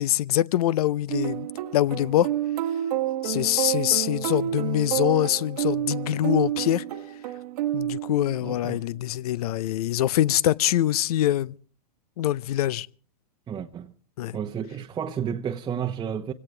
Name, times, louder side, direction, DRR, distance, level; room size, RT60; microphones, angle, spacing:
voice 1, 0.0-1.5 1.7-2.3 3.2-6.8 7.7-11.5 12.2-12.9 14.2-14.4, left 13 dB, 65° left, 0.7 m, -24 dB
sound 1, 1.1-8.6, right 12 dB, 65° right, 1.4 m, -29 dB
voice 2, 8.4-8.9 13.5-13.9 14.3-16.3, right 8 dB, 20° right, 0.9 m, -31 dB
24.5 x 17.5 x 3.3 m
hypercardioid pair, 120°, 21 cm